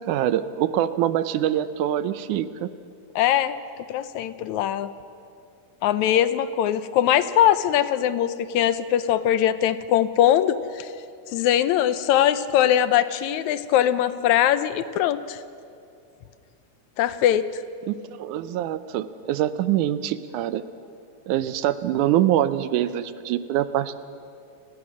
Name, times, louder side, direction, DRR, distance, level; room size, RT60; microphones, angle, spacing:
voice 1, 0.1-2.7 17.9-20.6 21.3-24.0, right 12 dB, 85° right, 13 dB, 2.3 m, -24 dB
voice 2, 3.2-3.6 3.9-4.9 5.8-10.9 11.3-15.4 17.0-17.5, left 11 dB, 75° left, 13 dB, 2.0 m, -21 dB
29.0 x 19.5 x 6.3 m, 2.5 s
omnidirectional pair, 3.5 m